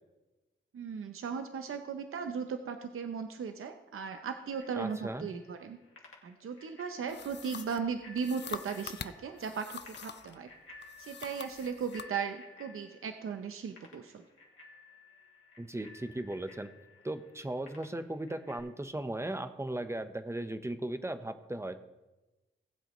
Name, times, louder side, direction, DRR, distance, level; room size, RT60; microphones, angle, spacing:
voice 1, 0.7-5.8 6.2-10.5 11.0-14.3, right 6 dB, 80° right, 7 dB, 0.7 m, -37 dB
Bicycle bell, 4.5-18.6, left 3 dB, 75° left, 2.3 m, -56 dB
voice 2, 4.8-5.3 15.6-16.7 17.0-21.8, right 1 dB, 15° right, 9 dB, 0.9 m, -37 dB
sound 1, 7.1-10.4 10.8-12.1, left 7 dB, 55° left, 0.5 m, -45 dB
19.0 x 7.9 x 3.1 m, 1.1 s
cardioid pair, 65°, 21 cm